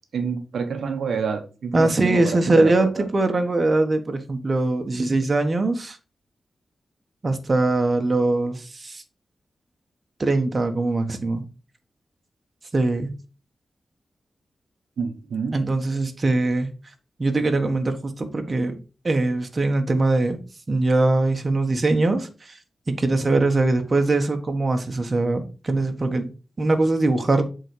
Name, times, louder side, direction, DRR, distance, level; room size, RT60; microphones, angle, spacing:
voice 1, 0.1-3.1 15.0-15.7, right 5 dB, 90° right, 1.0 m, -28 dB
voice 2, 1.7-6.0 7.2-9.0 10.2-11.4 12.7-13.1 15.5-16.7 17.2-18.7 19.0-20.4 20.7-22.6 22.9-27.4, right 2 dB, 40° right, 1.4 m, -22 dB
7.6 x 4.0 x 4.9 m
cardioid pair, 65°, 0 cm